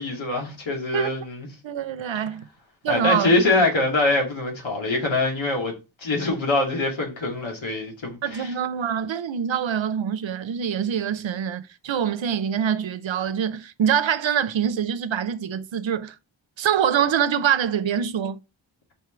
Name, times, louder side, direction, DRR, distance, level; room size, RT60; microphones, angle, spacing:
voice 1, 0.0-1.5 2.9-5.7 6.0-8.5, left 2 dB, 80° left, 2.6 m, -24 dB
voice 2, 1.6-2.5 2.8-3.3 8.2-16.2 16.6-18.4, right 8 dB, 80° right, 0.7 m, -24 dB
5.5 x 4.7 x 4.6 m
wide cardioid pair, 105°, 46 cm